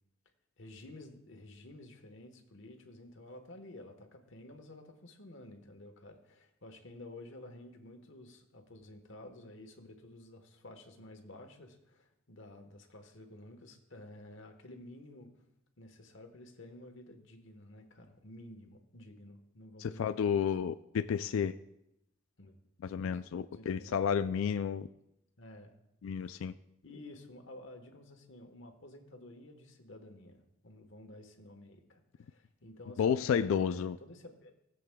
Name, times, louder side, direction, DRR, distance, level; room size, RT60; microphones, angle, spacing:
voice 1, 0.6-15.4 15.8-20.4 22.4-22.5 22.9-23.2 23.5-24.0 25.4-25.7 26.8-34.5, left 1 dB, 70° left, 5 dB, 1.2 m, -52 dB
voice 2, 19.8-21.5 22.8-24.9 26.0-26.5 33.0-34.0, left 7 dB, 90° left, 12 dB, 0.3 m, -31 dB
18.5 x 7.7 x 2.3 m, 0.84 s
head